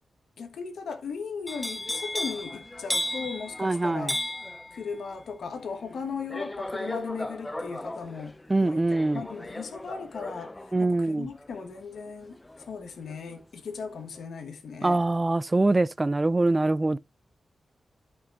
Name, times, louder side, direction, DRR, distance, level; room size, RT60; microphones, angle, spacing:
voice 1, 0.4-4.2 4.7-8.4 8.6-8.8 9.1-15.0, left 5 dB, 80° left, 1.4 m, -37 dB
sound 1, 1.5-13.4 13.8-14.2, left 1 dB, 20° left, 0.8 m, -36 dB
voice 2, 3.6-4.1 8.5-9.2 10.7-11.3 14.8-17.0, right 2 dB, 25° right, 0.4 m, -24 dB
12.5 x 6.0 x 2.5 m
cardioid pair, 60°, 0 cm